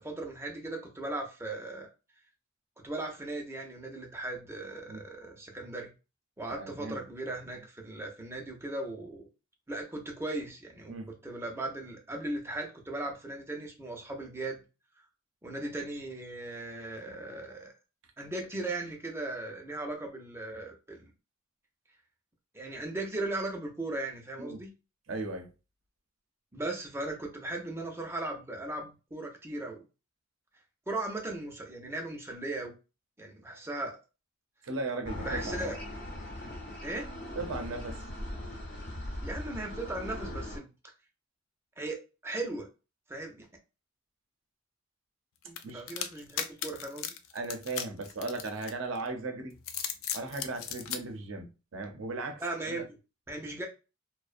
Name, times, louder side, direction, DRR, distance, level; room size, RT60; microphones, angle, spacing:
voice 1, 0.0-1.9 2.8-5.9 6.4-9.3 9.7-14.6 15.4-17.7 18.2-21.1 22.5-24.7 26.5-29.8 30.9-32.8 33.2-34.0 35.2-35.7 36.8-37.1 39.2-40.7 41.8-42.7 43.1-43.5 45.4-47.1 52.4-53.0 53.3-53.7, right 2 dB, 15° right, 0.4 m, -37 dB
voice 2, 6.6-7.0 10.9-11.1 24.4-24.6 25.1-25.5 34.6-35.7 37.4-38.0 45.6-45.8 47.3-49.6 50.1-52.8, right 3 dB, 90° right, 0.6 m, -37 dB
sound 1, 35.0-40.6, left 1 dB, 60° left, 0.9 m, -39 dB
sound 2, 45.6-49.0 49.5-51.0, left 9 dB, 85° left, 0.4 m, -36 dB
2.5 x 2.0 x 2.4 m
head